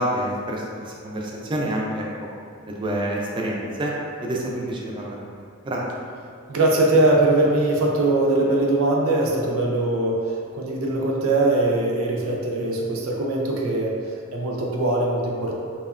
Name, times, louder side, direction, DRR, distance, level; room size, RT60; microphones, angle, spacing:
voice 1, 0.0-2.1 2.7-3.9 4.2-5.3 5.6-5.8, right 1 dB, 25° right, -3 dB, 0.3 m, -27 dB
voice 2, 6.5-10.2 10.5-14.0 14.3-15.5, right 2 dB, 90° right, -2 dB, 0.4 m, -21 dB
2.7 x 2.1 x 2.3 m, 2.3 s
head